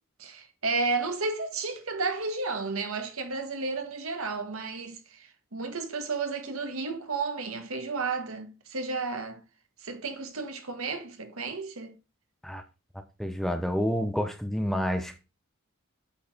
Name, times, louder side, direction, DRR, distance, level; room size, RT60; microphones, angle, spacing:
voice 1, 0.2-9.4 9.8-11.9, right 4 dB, 80° right, 1.5 m, -32 dB
voice 2, 13.2-15.2, equal, ahead, 0.7 m, -29 dB
8.5 x 4.6 x 4.4 m
head